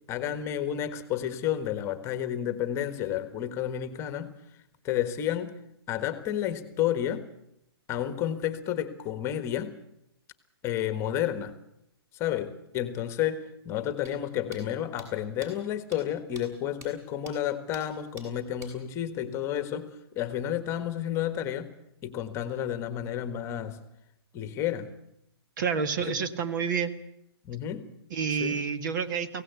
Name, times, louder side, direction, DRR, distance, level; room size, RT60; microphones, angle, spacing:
voice 1, 0.1-5.6 5.9-7.3 7.9-9.8 10.6-11.6 12.1-21.7 22.0-23.8 24.3-24.9 26.0-26.2 27.4-27.9 28.4-28.6, left 10 dB, 20° left, 10 dB, 1.5 m, -31 dB
sound 1, 14.1-14.2 14.5-14.6 15.0-15.1 15.4-15.5 15.9-16.0 16.4-16.5 16.8-16.9 17.3-17.4 17.7-17.8 18.2-18.3 18.6-18.7, right 1 dB, 20° right, 6.4 m, -46 dB
voice 2, 25.6-26.9 28.1-29.4, right 6 dB, 45° right, 10 dB, 1.7 m, -29 dB
23.5 x 17.0 x 8.2 m, 0.79 s
hypercardioid pair, 155°, 14 cm